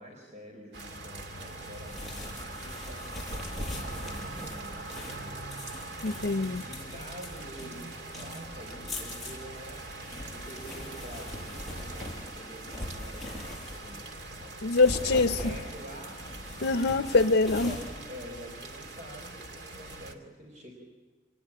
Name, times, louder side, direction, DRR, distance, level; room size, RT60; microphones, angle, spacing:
voice 1, 0.0-3.1 3.7-5.5 6.4-7.9 8.2-9.9 10.3-13.4 13.8-16.2 17.5-20.7, equal, 40° right, 1 dB, 4.1 m, -47 dB
sound 1, 0.7-20.1, right 2 dB, 65° right, 2.5 m, -43 dB
sound 2, 1.4-14.1 14.6-18.9, left 1 dB, ahead, 6.9 m, -42 dB
voice 2, 6.0-6.6 14.6-15.4 16.6-17.7, left 3 dB, 80° left, 8 dB, 0.7 m, -24 dB
27.5 x 20.0 x 8.7 m, 1.4 s
head